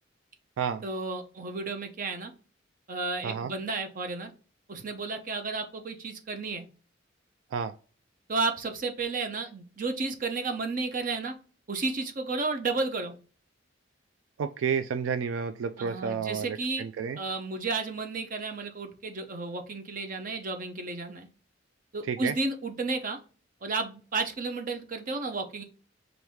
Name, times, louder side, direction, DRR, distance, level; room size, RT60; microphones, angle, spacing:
voice 1, 0.8-2.3 2.9-4.3 4.7-6.6 8.3-11.3 11.7-13.1 15.8-16.8 17.2-21.3 21.9-23.2 23.6-25.6, right 3 dB, 45° right, 5 dB, 0.7 m, -32 dB
voice 2, 14.4-17.2 22.1-22.3, right 6 dB, 80° right, 9 dB, 0.3 m, -30 dB
4.5 x 2.6 x 3.4 m, 0.37 s
head